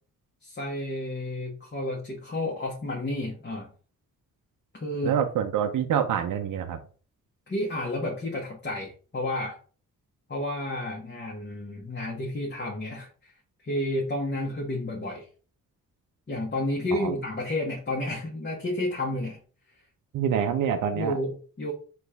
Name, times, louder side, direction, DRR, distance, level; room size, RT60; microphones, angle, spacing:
voice 1, 0.4-3.7 4.7-5.2 7.5-9.6 10.3-13.3 13.6-15.3 16.3-19.4 20.9-21.7, left 1 dB, 30° left, -2 dB, 1.1 m, -31 dB
voice 2, 5.0-6.8 16.9-17.1 20.1-21.1, right 8 dB, 60° right, 6 dB, 0.5 m, -26 dB
4.2 x 2.5 x 3.3 m, 0.39 s
cardioid pair, 85°, 35 cm